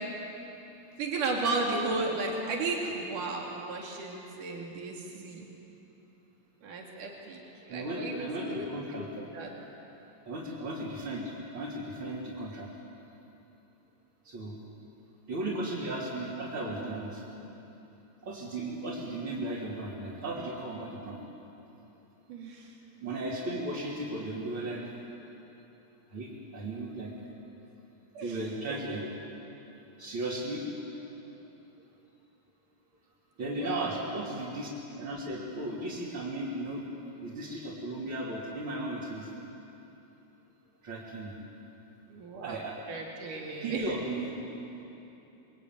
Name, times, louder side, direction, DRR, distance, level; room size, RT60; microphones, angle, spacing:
voice 1, 1.0-5.4 6.6-9.1 9.3-9.5 22.3-22.7 28.1-28.4 28.7-28.9 33.4-34.1 42.1-43.9, right 3 dB, 80° right, -1 dB, 4.2 m, -35 dB
voice 2, 7.7-9.1 10.3-12.7 14.2-14.6 15.3-17.2 18.2-21.2 23.0-24.9 26.1-27.1 28.2-29.1 30.0-30.6 33.4-34.7 35.0-36.8 37.2-39.3 40.8-41.3 42.4-42.8 43.6-44.4, right 1 dB, 40° right, -6 dB, 4.1 m, -35 dB
27.5 x 23.0 x 9.5 m, 3.0 s
omnidirectional pair, 3.6 m